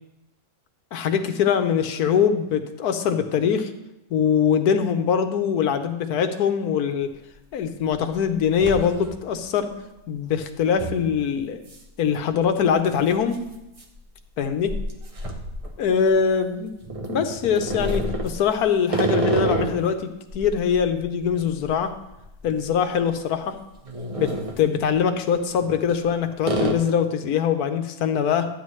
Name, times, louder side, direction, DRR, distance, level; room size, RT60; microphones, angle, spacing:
voice 1, 0.9-3.7 4.1-7.1 7.5-9.7 10.1-11.6 12.0-13.4 14.4-14.7 15.8-16.7 17.1-20.1 20.3-21.9 22.4-23.5 24.2-28.5, left 7 dB, 85° left, 8 dB, 1.3 m, -22 dB
sound 1, 7.0-7.1 7.6-8.1 8.3-9.4 9.7-9.8 10.8-11.0 11.7-11.9 12.1-12.2 13.2-16.3 16.8-19.9 20.3-22.7 22.9-23.1 23.6-24.7 25.5-26.1 26.4-26.7, right 1 dB, 30° right, 0.8 m, -29 dB
12.5 x 9.0 x 3.2 m, 0.93 s
omnidirectional pair, 1.6 m